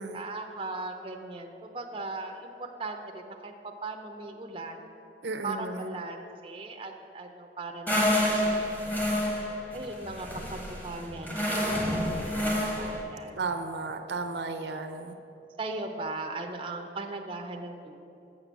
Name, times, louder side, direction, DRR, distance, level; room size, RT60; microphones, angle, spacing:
voice 1, 0.1-4.9 5.4-9.1 9.7-13.4 14.4-15.1 15.6-18.0, right 3 dB, 30° right, 3 dB, 0.6 m, -39 dB
voice 2, 5.2-5.9 13.4-15.2, right 3 dB, 70° right, 7 dB, 0.6 m, -34 dB
sound 1, 7.9-13.0, left 1 dB, 10° left, 1.2 m, -28 dB
6.8 x 6.6 x 7.3 m, 2.7 s
head